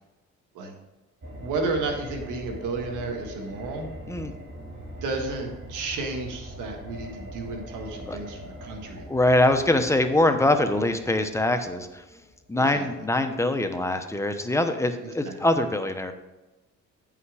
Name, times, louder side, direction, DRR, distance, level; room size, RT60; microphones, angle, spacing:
sound 1, 1.2-13.1 13.3-13.4, equal, 35° right, 2.5 m, -42 dB
voice 1, 1.4-3.9 5.0-9.1 12.6-13.1 15.0-15.3, right 3 dB, 90° right, 2 dB, 1.7 m, -32 dB
voice 2, 9.1-12.0 12.5-16.1, left 1 dB, 10° left, 7 dB, 0.9 m, -23 dB
9.3 x 5.8 x 4.9 m, 1.1 s
cardioid pair, 90°, 30 cm